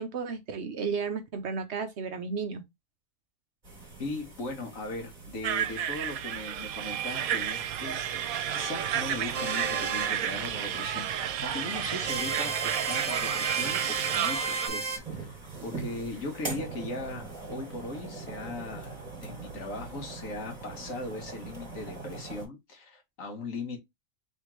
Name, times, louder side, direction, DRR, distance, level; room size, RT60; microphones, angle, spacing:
voice 1, 0.0-2.6, right 5 dB, 60° right, 0.9 m, -33 dB
sound 1, 3.6-22.5, right 3 dB, 30° right, 2.0 m, -44 dB
voice 2, 4.0-15.4 15.6-19.0 19.2-23.8, left 2 dB, 70° left, 1.7 m, -39 dB
sound 2, 5.4-14.7, right 9 dB, 90° right, 1.1 m, -31 dB
sound 3, 9.3-10.1 12.0-15.0, right 4 dB, 45° right, 0.4 m, -33 dB
3.6 x 3.5 x 3.0 m
omnidirectional pair, 1.4 m